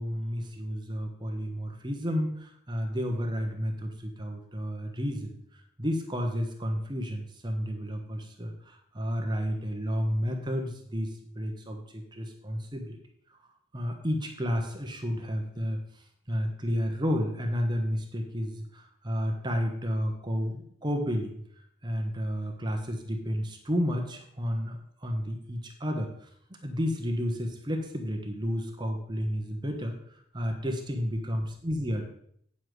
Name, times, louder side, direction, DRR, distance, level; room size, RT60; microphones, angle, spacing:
voice 1, 0.0-13.0 13.7-15.8 16.3-21.4 21.8-26.3 26.6-32.1, equal, 20° right, 3 dB, 1.2 m, -31 dB
9.4 x 7.2 x 4.8 m, 0.67 s
head